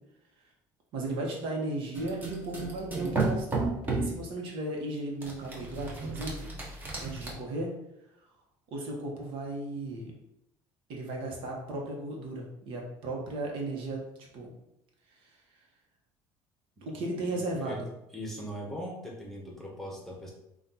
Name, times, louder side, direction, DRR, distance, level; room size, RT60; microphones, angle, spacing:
voice 1, 0.9-6.5 7.0-7.8 8.7-10.1 10.9-14.5 16.8-17.9, right 2 dB, 70° right, -1 dB, 1.1 m, -35 dB
sound 1, 1.9-4.2 5.2-7.3, right 3 dB, 20° right, 0.9 m, -33 dB
voice 2, 17.3-17.8 18.1-20.3, equal, 5° left, -2 dB, 1.0 m, -40 dB
5.7 x 2.5 x 2.8 m, 0.82 s
cardioid pair, 140°, 9 cm